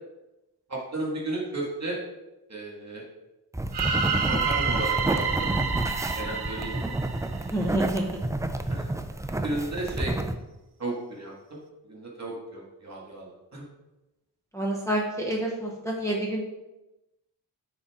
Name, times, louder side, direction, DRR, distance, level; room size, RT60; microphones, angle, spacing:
voice 1, 0.7-2.0 2.5-3.0 4.2-5.5 6.1-6.9 8.7-8.9 9.4-10.1 10.8-11.6 11.9-13.6, right 2 dB, 40° right, -2 dB, 2.0 m, -34 dB
sound 1, 3.5-10.3, right 1 dB, 10° right, 0.4 m, -30 dB
sound 2, 3.7-7.8, right 5 dB, 70° right, 1.0 m, -29 dB
voice 2, 7.5-8.2 14.5-16.4, right 1 dB, 5° left, -3 dB, 0.9 m, -28 dB
9.6 x 4.1 x 3.7 m, 0.97 s
wide cardioid pair, 130°, 41 cm